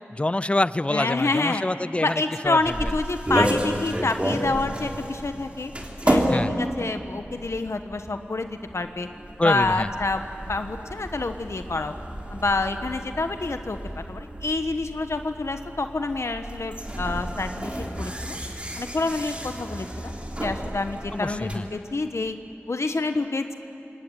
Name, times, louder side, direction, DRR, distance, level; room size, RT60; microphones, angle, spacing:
voice 1, 0.1-2.9 6.3-6.5 9.4-9.9 21.1-21.7, left 2 dB, 25° left, 17 dB, 0.5 m, -26 dB
voice 2, 0.9-1.6 2.0-5.7 6.0-9.1 9.4-10.2 10.5-11.9 12.3-18.4 18.8-20.1 20.4-22.4 22.7-23.5, left 3 dB, 75° left, 7 dB, 1.2 m, -27 dB
sound 1, 2.5-21.6, right 1 dB, 25° right, 3.4 m, -31 dB
26.5 x 21.5 x 8.8 m, 2.7 s
wide cardioid pair, 65°, 5 cm